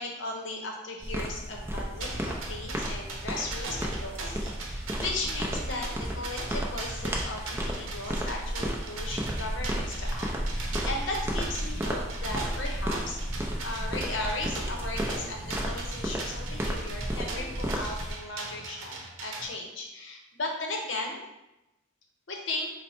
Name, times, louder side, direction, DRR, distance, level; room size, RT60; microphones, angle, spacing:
voice 1, 0.0-21.2 22.3-22.7, left 2 dB, 65° left, 1 dB, 0.7 m, -36 dB
sound 1, 1.0-18.1, equal, 10° right, 0.4 m, -33 dB
sound 2, 2.0-19.5, right 3 dB, 80° right, 0.7 m, -40 dB
4.1 x 2.1 x 4.2 m, 0.95 s
head